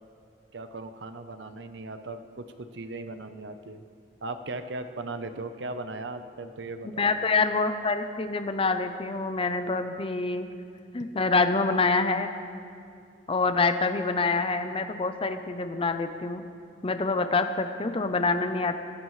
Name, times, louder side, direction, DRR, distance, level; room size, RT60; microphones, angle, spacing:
voice 1, 0.5-3.8 4.2-7.1, right 2 dB, 75° right, 8 dB, 0.8 m, -38 dB
voice 2, 6.8-10.5 10.9-12.3 13.3-16.4 16.8-18.8, left 3 dB, 30° left, 8 dB, 0.7 m, -26 dB
24.0 x 15.0 x 3.2 m, 2.4 s
head